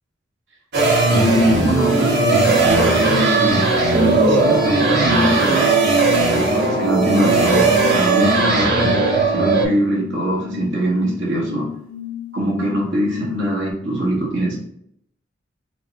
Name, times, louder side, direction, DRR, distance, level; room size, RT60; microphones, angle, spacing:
sound 1, 0.7-9.6, right 3 dB, 60° right, 1.2 m, -17 dB
voice 1, 1.1-3.6 3.9-5.8 6.3-11.7 12.3-14.6, right 1 dB, 80° right, -4 dB, 1.6 m, -21 dB
sound 2, 7.2-13.7, left 11 dB, 85° left, 0.5 m, -35 dB
5.2 x 2.9 x 2.8 m, 0.70 s
head